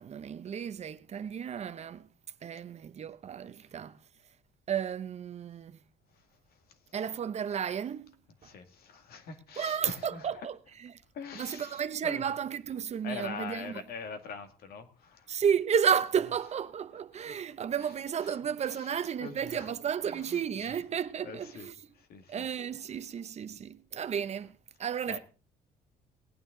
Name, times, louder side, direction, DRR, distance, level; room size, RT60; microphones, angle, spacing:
voice 1, 0.0-2.1 2.4-4.0 4.7-5.8 6.9-8.2 9.6-10.9 11.3-13.7 15.3-21.8 22.3-25.2, right 8 dB, 40° right, 0.7 m, -32 dB
voice 2, 6.1-6.8 8.4-10.3 11.1-12.2 13.0-15.3 17.3-17.4 17.8-17.9 18.2-18.4 18.6-19.7 20.0-20.8 21.2-21.7 21.9-22.5 25.1-25.2, left 5 dB, 65° left, 2.1 m, -44 dB
18.5 x 9.1 x 3.8 m
cardioid pair, 110°, 17 cm